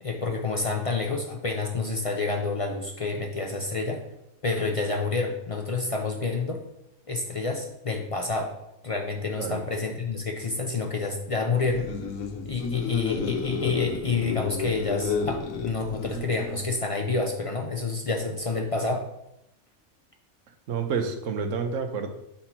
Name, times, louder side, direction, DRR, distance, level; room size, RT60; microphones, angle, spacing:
voice 1, 0.0-4.0 4.4-6.6 7.1-8.5 8.8-11.9 12.4-19.0, left 3 dB, 50° left, 2 dB, 0.4 m, -28 dB
sound 1, 11.6-16.7, left 5 dB, 85° left, 1.2 m, -31 dB
voice 2, 20.7-22.1, right 5 dB, 70° right, 6 dB, 1.1 m, -29 dB
5.4 x 4.3 x 4.4 m, 0.84 s
omnidirectional pair, 1.4 m